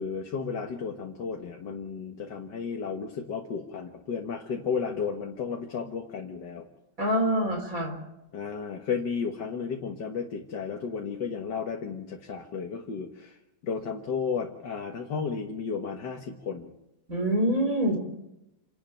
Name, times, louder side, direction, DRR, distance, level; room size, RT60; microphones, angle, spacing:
voice 1, 0.0-6.7 8.3-13.3 13.6-16.7, left 6 dB, 60° left, 2 dB, 2.1 m, -33 dB
voice 2, 7.0-8.0 17.1-18.0, equal, 40° right, 4 dB, 4.4 m, -25 dB
28.5 x 11.5 x 9.1 m, 0.91 s
omnidirectional pair, 2.2 m